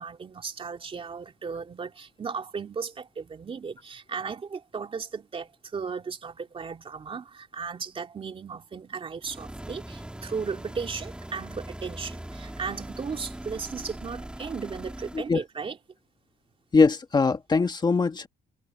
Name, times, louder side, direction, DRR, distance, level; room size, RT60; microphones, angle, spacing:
voice 1, 0.0-15.8, right 5 dB, 35° right, 3.0 m, -36 dB
sound 1, 9.2-15.3, right 1 dB, 5° right, 2.6 m, -40 dB
voice 2, 16.7-18.3, left 4 dB, 25° left, 2.0 m, -22 dB
cardioid pair, 110°, 17 cm